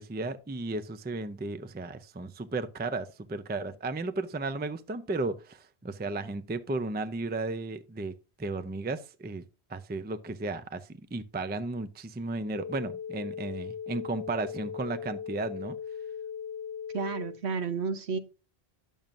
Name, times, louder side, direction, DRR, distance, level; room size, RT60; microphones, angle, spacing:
voice 1, 0.0-8.1 8.4-9.4 9.7-15.8, right 3 dB, 15° right, 0.3 m, -34 dB
sound 1, 12.4-17.4, left 7 dB, 90° left, 1.0 m, -39 dB
voice 2, 16.9-18.2, right 5 dB, 80° right, 1.2 m, -31 dB
10.5 x 7.1 x 2.5 m
omnidirectional pair, 1.1 m